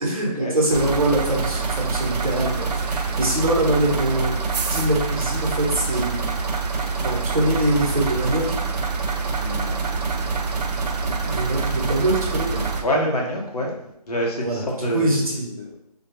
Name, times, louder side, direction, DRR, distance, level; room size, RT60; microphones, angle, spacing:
voice 1, 0.0-4.3 4.7-6.2 7.0-8.4 11.0-12.6 14.4-15.5, right 1 dB, 60° right, -2 dB, 0.8 m, -23 dB
sound 1, 0.7-12.8, right 4 dB, 80° right, 0.4 m, -26 dB
voice 2, 9.3-9.7 10.8-11.1 11.5-11.6 12.8-13.7 14.1-15.1 15.5-15.8, equal, 70° left, -1 dB, 0.7 m, -26 dB
2.2 x 2.0 x 3.0 m, 0.80 s
figure-of-eight pair, 175°, 21 cm